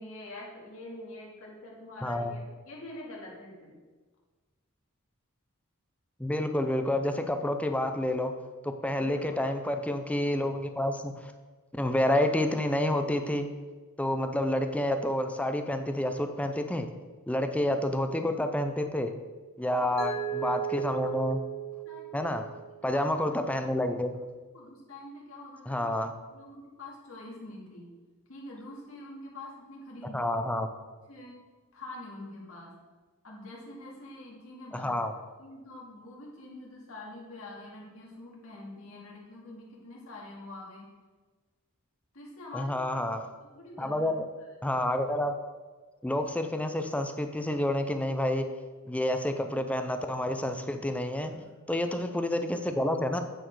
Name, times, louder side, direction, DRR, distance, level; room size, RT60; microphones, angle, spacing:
voice 1, 0.0-3.8 9.0-9.4 19.7-19.9 21.8-22.3 22.8-23.0 24.5-25.8 26.3-27.9 28.3-30.2 31.1-31.4 31.7-32.7 33.2-34.9 35.4-40.9 42.1-42.7 43.5-44.1 44.4-44.5 51.3-51.6, left 2 dB, 65° left, -3 dB, 2.0 m, -45 dB
voice 2, 2.0-2.3 6.2-8.3 8.6-11.3 11.7-13.5 14.0-16.9 17.3-19.1 19.6-21.4 22.1-22.5 22.8-24.1 25.7-26.1 30.1-30.7 34.7-35.1 42.5-43.3 43.8-44.1 44.6-45.3 46.0-48.5 48.9-51.3 51.7-53.2, left 1 dB, 5° left, 7 dB, 0.4 m, -29 dB
Mallet percussion, 20.0-22.9, right 10 dB, 45° right, 2.0 m, -36 dB
9.1 x 4.4 x 4.6 m, 1.3 s
head